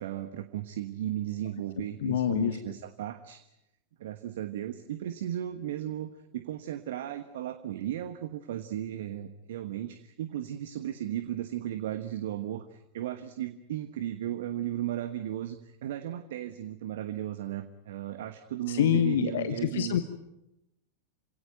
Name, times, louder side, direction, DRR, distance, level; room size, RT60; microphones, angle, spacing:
voice 1, 0.0-3.4 4.0-20.0, right 12 dB, 55° right, 10 dB, 1.2 m, -35 dB
voice 2, 2.0-2.6 18.7-20.0, left 10 dB, 60° left, 11 dB, 1.2 m, -26 dB
28.0 x 17.5 x 9.1 m, 0.88 s
figure-of-eight pair, 90°, 0 cm